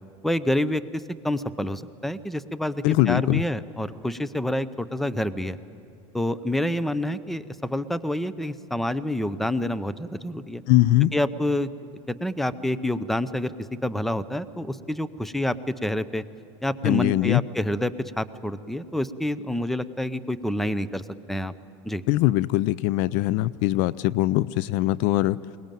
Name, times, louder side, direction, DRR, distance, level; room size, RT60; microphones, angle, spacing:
voice 1, 0.2-5.6 6.1-10.6 11.1-11.7 12.1-13.5 13.8-15.6 15.8-16.2 16.6-21.5 21.8-22.0, left 1 dB, ahead, 15 dB, 0.6 m, -28 dB
voice 2, 2.8-3.4 10.7-11.1 16.8-17.4 22.1-25.4, left 16 dB, 60° left, 20 dB, 0.4 m, -21 dB
22.0 x 19.0 x 9.1 m, 2.8 s
supercardioid pair, 110°, 16 cm